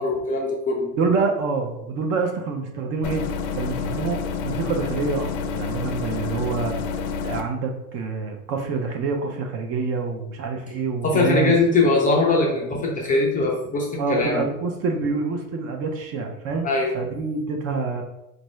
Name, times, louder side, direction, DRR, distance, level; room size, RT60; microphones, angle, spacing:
voice 1, 0.0-0.9 11.0-14.4 16.6-16.9, left 3 dB, 20° left, -1 dB, 0.5 m, -21 dB
voice 2, 1.0-3.2 3.5-6.7 7.2-11.5 14.0-16.7 16.9-18.0, right 4 dB, 35° right, 3 dB, 0.6 m, -26 dB
sound 1, 3.0-7.4, left 5 dB, 60° left, 0.6 m, -28 dB
4.5 x 2.6 x 3.1 m, 0.89 s
supercardioid pair, 125°, 44 cm